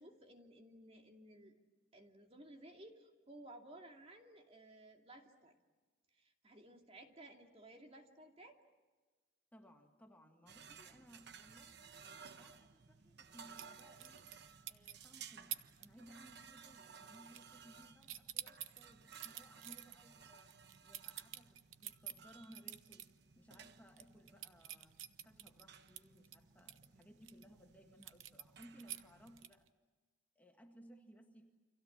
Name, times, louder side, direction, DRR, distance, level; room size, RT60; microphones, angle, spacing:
voice 1, 0.0-1.5 1.9-5.5 6.1-8.6, right 1 dB, 30° right, 3 dB, 2.6 m, -57 dB
voice 2, 9.5-11.8 12.3-14.2 14.7-23.1 23.4-25.0 25.3-29.7 30.4-31.5, equal, 10° left, 3 dB, 1.8 m, -62 dB
sound 1, 10.5-29.4, right 6 dB, 60° right, 1.0 m, -59 dB
sound 2, 13.6-14.4 14.7-15.1 15.5-15.9 16.2-16.5 16.7-17.7 18.0-23.1 23.5-23.6 23.9-27.4 28.0-29.7, right 12 dB, 90° right, 0.9 m, -48 dB
30.0 x 26.0 x 7.4 m, 1.3 s
head